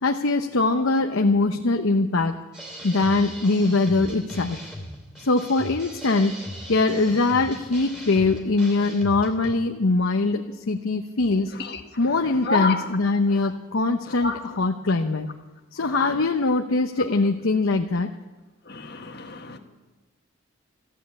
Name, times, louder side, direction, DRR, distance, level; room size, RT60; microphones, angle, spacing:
voice 1, 0.0-2.3 2.8-4.6 5.2-6.3 6.7-11.5 12.0-15.3 15.7-18.1, left 3 dB, 75° left, 0.8 m, -22 dB
sound 1, 2.5-9.5, equal, ahead, 2.8 m, -39 dB
voice 2, 11.5-13.0 13.3-13.4 14.1-14.4 15.8-16.2 18.7-19.6, left 3 dB, 50° left, 1.5 m, -30 dB
15.0 x 11.0 x 8.3 m
head